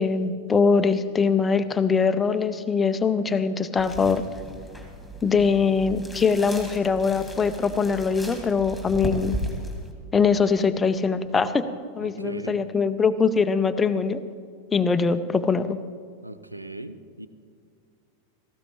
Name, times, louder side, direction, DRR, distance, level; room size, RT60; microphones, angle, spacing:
voice 1, 0.0-4.2 5.2-9.4 10.1-11.7 12.0-14.2 14.7-15.8, left 5 dB, 15° left, 11 dB, 0.7 m, -22 dB
sound 1, 3.8-9.9, equal, ahead, 2.4 m, -36 dB
voice 2, 12.0-12.6 16.2-17.3, right 1 dB, 85° right, 13 dB, 0.6 m, -38 dB
18.0 x 15.0 x 3.2 m, 2.3 s
figure-of-eight pair, 90°, 0 cm